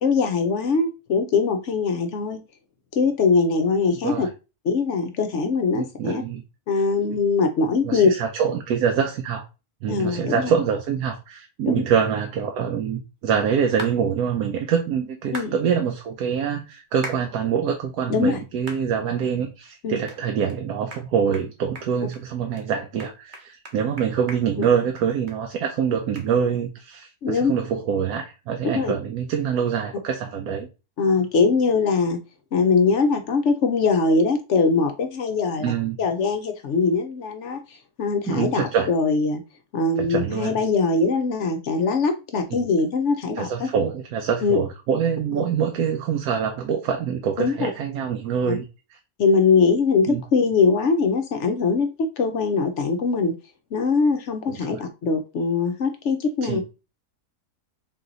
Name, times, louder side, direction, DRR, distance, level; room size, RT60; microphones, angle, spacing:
voice 1, 0.0-2.4 3.0-4.3 4.6-6.2 6.7-8.1 9.9-10.5 11.7-11.8 15.3-15.6 18.1-18.4 19.8-20.0 24.6-24.7 27.2-27.5 28.7-28.9 31.0-32.2 32.5-39.4 39.7-43.7 44.4-44.6 45.4-45.5 47.4-47.7 48.5-48.6 49.2-53.3 53.7-56.6, left 4 dB, 60° left, 0.8 m, -22 dB
voice 2, 5.7-6.4 7.8-9.4 9.8-30.7 35.6-36.0 38.3-38.9 40.0-40.6 43.4-48.7 50.1-50.2 54.5-54.8 56.4-56.6, right 7 dB, 80° right, 1.2 m, -25 dB
sound 1, 13.8-14.0 15.3-15.5 17.0-17.2 17.8-17.9 18.7-18.8 19.3-19.4 20.1-20.2 20.5-20.6 20.9-21.1 21.3-21.5 21.8-22.2 22.6-22.7 23.0-25.4 25.6-25.7 26.2-26.3, right 2 dB, 40° right, 0.8 m, -37 dB
3.9 x 3.0 x 3.8 m
omnidirectional pair, 1.7 m